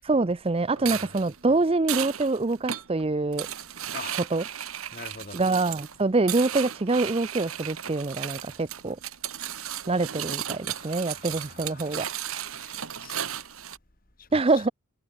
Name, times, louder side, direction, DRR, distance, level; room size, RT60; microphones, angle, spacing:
voice 1, 0.0-3.5 4.3-4.4 5.3-9.0 9.9-12.1 14.3-14.7, right 3 dB, 25° right, 0.5 m, -25 dB
voice 2, 0.8-1.1 3.9-4.2 4.9-5.4 10.7-12.1 12.4-13.5 14.2-14.3, left 4 dB, 40° left, 2.5 m, -45 dB
sound 1, 0.8-13.8, right 10 dB, 75° right, 2.0 m, -35 dB
head